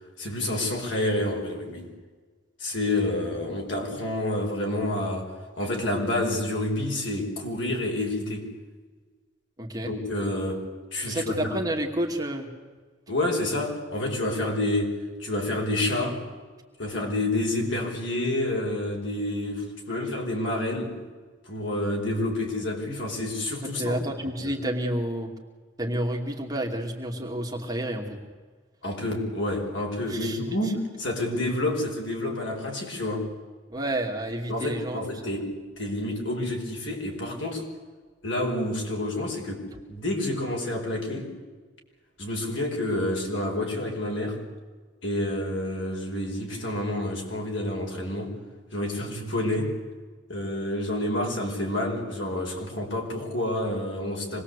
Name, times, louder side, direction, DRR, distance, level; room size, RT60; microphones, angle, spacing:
voice 1, 0.2-1.9 2.6-8.5 9.8-11.6 13.1-16.2 16.8-21.0 21.5-24.0 24.4-24.5 28.8-33.3 34.5-37.6 38.2-41.3 42.2-44.4 45.0-48.4 48.7-49.8 50.3-54.4, left 1 dB, 70° left, 1 dB, 5.3 m, -29 dB
voice 2, 9.6-9.9 11.1-12.5 23.6-25.3 25.8-28.2 30.1-30.7 33.7-35.3, right 1 dB, 20° right, 0 dB, 2.5 m, -30 dB
26.0 x 20.5 x 8.3 m, 1.4 s
head